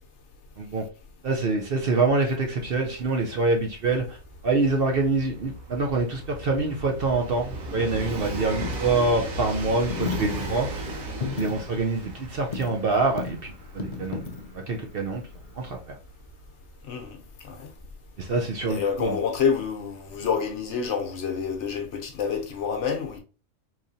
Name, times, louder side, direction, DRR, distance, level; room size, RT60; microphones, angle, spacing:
voice 1, 1.2-4.2 4.4-10.7 11.4-14.2 14.5-15.2 15.6-16.0 18.2-19.2, right 3 dB, 55° right, 0.7 m, -25 dB
Train, 1.7-1.8 2.0-18.6 19.6-19.7, right 1 dB, 80° right, 1.4 m, -37 dB
Coin (dropping), 7.2-15.8, left 4 dB, 80° left, 0.4 m, -37 dB
voice 2, 16.9-17.7 18.7-23.2, left 6 dB, 65° left, 1.0 m, -28 dB
4.0 x 3.0 x 2.6 m
omnidirectional pair, 1.4 m